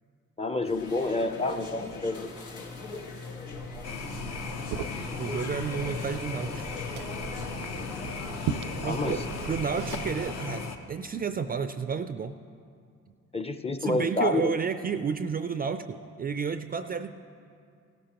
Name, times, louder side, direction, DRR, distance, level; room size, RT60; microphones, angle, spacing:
voice 1, 0.4-2.3 8.8-9.2 13.3-14.5, left 2 dB, 20° left, 8 dB, 0.6 m, -28 dB
sound 1, 0.6-10.6, left 4 dB, 90° left, 1.7 m, -40 dB
Liquid, 3.5-10.3, right 8 dB, 85° right, 0.5 m, -39 dB
sound 2, 3.8-10.8, left 5 dB, 60° left, 0.9 m, -37 dB
voice 2, 5.2-6.6 8.8-9.2 9.5-12.3 13.8-17.1, right 6 dB, 30° right, 10 dB, 0.4 m, -31 dB
16.0 x 12.5 x 3.0 m, 2.3 s
cardioid pair, 90°, 30 cm